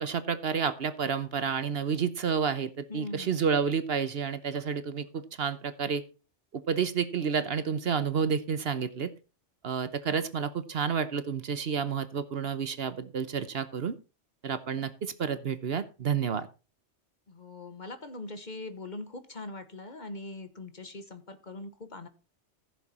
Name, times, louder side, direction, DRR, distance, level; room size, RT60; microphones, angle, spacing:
voice 1, 0.0-6.0 6.5-9.1 9.6-13.9 14.4-16.5, right 6 dB, 60° right, 13 dB, 1.1 m, -30 dB
voice 2, 2.9-3.4 17.3-22.1, left 2 dB, 40° left, 10 dB, 1.3 m, -41 dB
15.0 x 7.3 x 4.2 m, 0.32 s
omnidirectional pair, 1.2 m